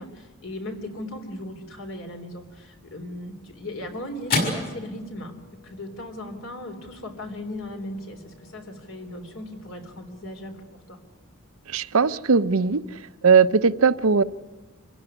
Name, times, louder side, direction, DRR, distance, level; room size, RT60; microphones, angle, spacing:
voice 1, 0.0-10.6 10.9-11.0, left 1 dB, 70° left, 5 dB, 3.6 m, -37 dB
sound 1, 3.0-11.6, left 2 dB, 45° left, 6.3 m, -36 dB
voice 2, 11.7-12.8 13.2-14.2, right 5 dB, 90° right, 12 dB, 0.8 m, -19 dB
26.5 x 16.0 x 9.9 m, 1.3 s
head